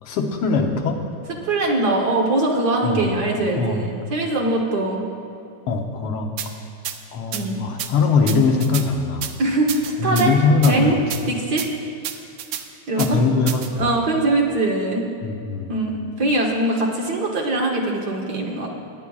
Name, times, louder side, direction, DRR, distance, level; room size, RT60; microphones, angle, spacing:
voice 1, 0.0-1.0 2.8-3.1 3.6-3.9 5.7-6.3 7.1-9.3 10.0-11.3 13.0-13.9 15.2-15.7, left 4 dB, 80° left, 3 dB, 1.7 m, -21 dB
voice 2, 1.4-5.0 7.3-7.6 9.4-10.3 10.7-11.0 11.2-11.6 12.9-13.2 13.8-15.0 15.7-18.8, right 2 dB, 55° right, 0 dB, 1.4 m, -22 dB
sound 1, 6.4-6.5 6.9-7.0 7.3-7.4 7.8-7.9 8.3-8.9 9.2-9.3 9.7-10.3 10.6-10.7 11.1-11.2 11.6-11.7 12.0-12.6 13.0-13.1 13.5-13.7, right 10 dB, 80° right, 1.5 m, -29 dB
20.0 x 9.6 x 2.3 m, 2.6 s
omnidirectional pair, 2.4 m